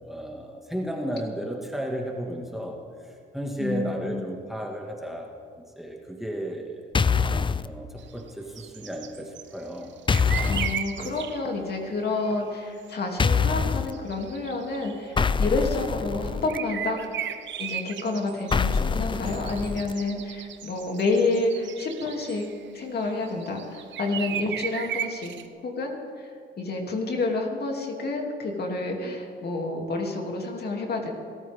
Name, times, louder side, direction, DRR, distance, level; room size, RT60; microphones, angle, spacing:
voice 1, 0.0-5.3 5.8-6.8 7.6-9.9 11.0-11.1, right 1 dB, ahead, 1 dB, 2.0 m, -34 dB
voice 2, 3.6-4.3 10.5-17.0 17.6-22.5 22.7-25.3 25.6-26.3 26.6-31.1, left 3 dB, 55° left, 1 dB, 2.8 m, -29 dB
sound 1, 6.9-7.7 10.1-10.8 13.2-13.9 15.2-16.6 18.5-19.9, left 5 dB, 25° left, 0.5 m, -24 dB
sound 2, 8.0-11.5 11.9-12.3 12.9-13.0 13.8-15.1 16.5-22.6 23.1-25.5, right 9 dB, 65° right, 1.0 m, -36 dB
28.5 x 13.5 x 3.7 m, 2.3 s
cardioid pair, 90°, 20 cm